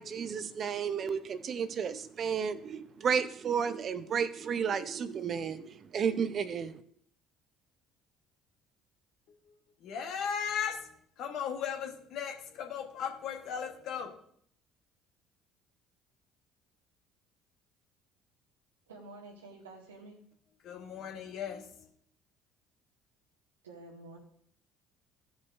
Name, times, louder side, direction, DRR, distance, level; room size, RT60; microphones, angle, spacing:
voice 1, 0.0-6.8, right 7 dB, 45° right, 13 dB, 0.6 m, -32 dB
voice 2, 9.8-10.9 11.2-14.2 20.6-21.9, left 7 dB, 60° left, 3 dB, 1.4 m, -37 dB
voice 3, 18.9-20.2 23.6-24.2, right 3 dB, 85° right, -1 dB, 1.8 m, -49 dB
15.0 x 5.6 x 2.7 m, 0.64 s
hypercardioid pair, 55°, 0 cm